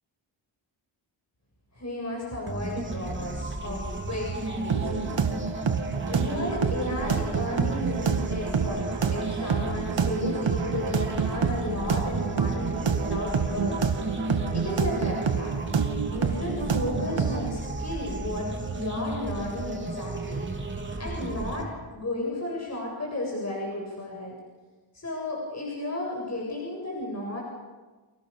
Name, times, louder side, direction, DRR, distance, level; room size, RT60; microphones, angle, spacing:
voice 1, 1.7-5.4 6.1-13.8 14.5-15.6 16.1-20.4 21.0-24.4 24.9-27.4, left 1 dB, 30° left, -2 dB, 7.4 m, -34 dB
sound 1, 2.5-21.6, right 2 dB, 25° right, 3.5 m, -34 dB
sound 2, 4.7-17.5, right 6 dB, 60° right, 2.1 m, -28 dB
30.0 x 27.5 x 6.9 m, 1.3 s
wide cardioid pair, 135°, 49 cm